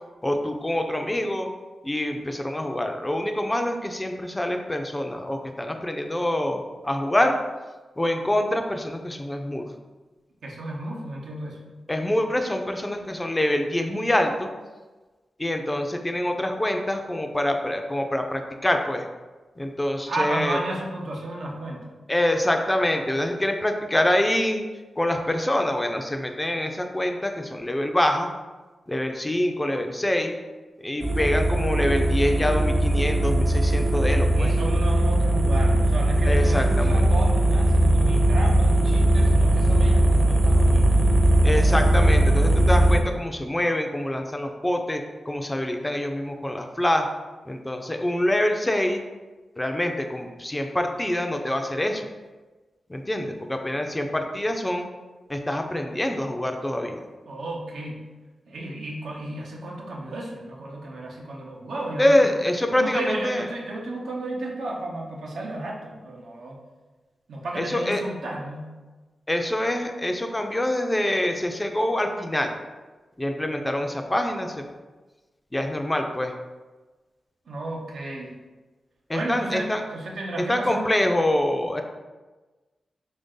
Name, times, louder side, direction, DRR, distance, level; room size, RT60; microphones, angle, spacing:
voice 1, 0.2-1.5 1.8-7.3 8.0-9.7 11.9-14.5 15.4-19.1 19.6-20.6 22.1-24.6 25.0-28.3 28.9-30.3 30.8-34.5 36.2-37.1 41.4-47.1 47.5-49.0 49.6-52.1 52.9-54.9 55.3-57.0 62.0-63.4 67.6-68.0 69.3-72.5 73.2-74.6 75.5-76.3 79.1-79.8 80.5-81.8, left 1 dB, 20° left, 4 dB, 0.4 m, -25 dB
voice 2, 10.4-11.7 20.1-22.0 34.3-41.0 57.3-58.1 58.5-62.3 62.7-66.6 67.3-68.7 77.5-78.3 79.1-80.9, right 1 dB, 80° right, -2 dB, 0.7 m, -33 dB
sound 1, 31.0-43.0, right 1 dB, 25° right, 0.6 m, -19 dB
3.1 x 2.6 x 3.6 m, 1.3 s
cardioid pair, 60°, 0 cm